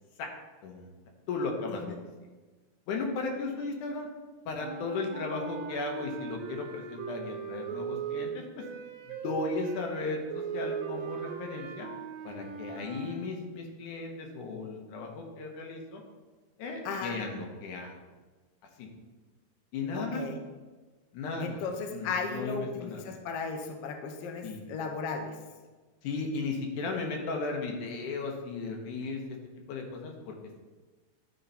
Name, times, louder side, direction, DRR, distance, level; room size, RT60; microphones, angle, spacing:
voice 1, 1.3-2.0 2.9-4.1 4.5-8.4 9.1-11.9 12.2-16.0 16.6-18.0 18.8-18.9 19.7-20.2 21.1-21.6 21.9-23.1 24.4-24.6 26.0-29.2 29.7-30.3, left 3 dB, 90° left, 1 dB, 2.5 m, -35 dB
sound 1, 4.5-13.2, right 7 dB, 75° right, 1.7 m, -39 dB
voice 2, 19.9-20.4 21.4-25.3, left 5 dB, 70° left, 4 dB, 1.5 m, -35 dB
11.0 x 4.6 x 4.1 m, 1.3 s
omnidirectional pair, 3.4 m